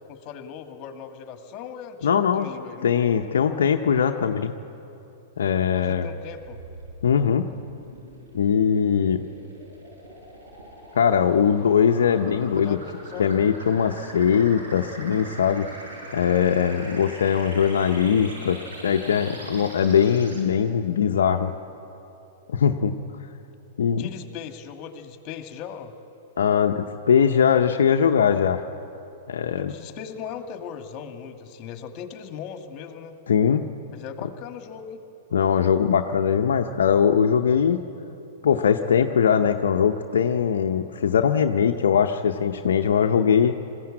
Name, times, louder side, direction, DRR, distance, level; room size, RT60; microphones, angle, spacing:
voice 1, 0.0-3.2 5.7-6.6 12.1-13.5 23.9-25.9 29.6-33.2 33.9-35.0, left 7 dB, 40° left, 6 dB, 1.9 m, -39 dB
voice 2, 2.0-2.5 2.8-4.5 5.4-6.1 7.0-7.5 8.3-9.2 10.9-12.8 13.2-15.7 16.1-21.5 22.5-22.9 23.8-24.0 26.4-28.6 29.3-29.7 33.3-33.6 35.3-37.8 38.4-43.5, left 7 dB, 80° left, 4 dB, 0.7 m, -21 dB
sound 1, 6.2-20.4, right 1 dB, 85° right, 6.1 m, -42 dB
20.5 x 15.5 x 8.7 m, 2.8 s
hypercardioid pair, 115°, 0 cm